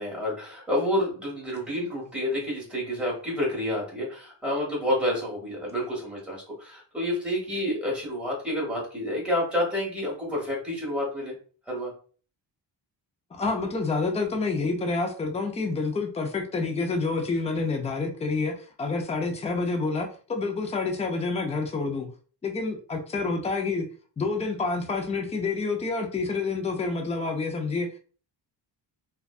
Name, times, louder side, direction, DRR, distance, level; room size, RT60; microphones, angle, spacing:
voice 1, 0.0-11.3 11.7-11.9, left 1 dB, 5° right, -3 dB, 1.2 m, -29 dB
voice 2, 13.3-22.1 22.4-23.9 24.2-28.0, left 3 dB, 15° left, 3 dB, 0.3 m, -28 dB
2.5 x 2.2 x 2.3 m, 0.41 s
wide cardioid pair, 125°, 45 cm